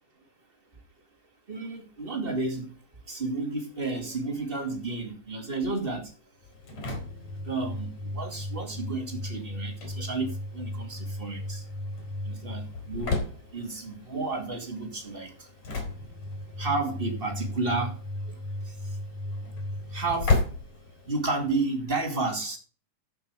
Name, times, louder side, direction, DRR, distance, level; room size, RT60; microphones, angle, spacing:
voice 1, 1.5-2.7 3.1-6.1 7.4-11.6 12.2-13.2 13.5-15.5 16.6-18.0 18.3-18.4 19.9-20.4 21.1-22.6, right 3 dB, 20° right, 2 dB, 1.6 m, -31 dB
Engine / Slam, 6.4-21.6, left 2 dB, 50° left, 5.0 m, -34 dB
14.0 x 5.9 x 4.8 m, 0.36 s
omnidirectional pair, 4.3 m